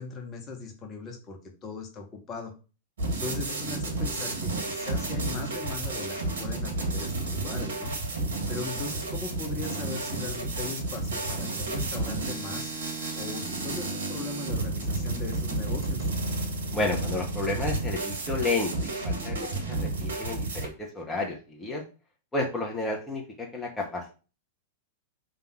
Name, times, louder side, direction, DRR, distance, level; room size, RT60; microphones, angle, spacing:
voice 1, 0.0-2.5 3.1-7.9 8.5-12.7 13.1-16.1, left 4 dB, 30° left, 3 dB, 1.7 m, -39 dB
sound 1, 3.0-20.7, right 2 dB, 75° right, 2.0 m, -31 dB
voice 2, 16.7-21.8 22.3-24.1, left 2 dB, 10° left, -1 dB, 1.6 m, -31 dB
5.6 x 4.0 x 6.1 m, 0.34 s
figure-of-eight pair, 100°, 0 cm